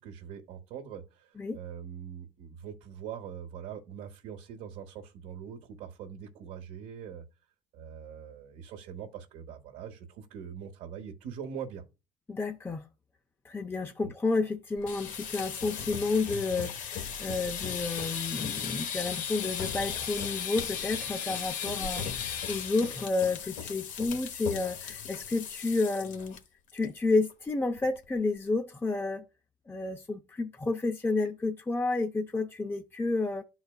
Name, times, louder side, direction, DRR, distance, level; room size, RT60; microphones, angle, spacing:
voice 1, 0.0-7.2 7.7-11.8 21.8-22.1, right 8 dB, 80° right, 1.0 m, -43 dB
voice 2, 12.3-12.8 13.4-22.0 22.5-26.4 26.7-29.2 29.7-33.4, left 3 dB, 15° left, 0.6 m, -30 dB
sound 1, 14.8-26.4 26.7-27.0 27.3-27.4 27.8-28.2, left 8 dB, 65° left, 1.0 m, -36 dB
12.0 x 4.0 x 2.3 m
supercardioid pair, 90°, 14 cm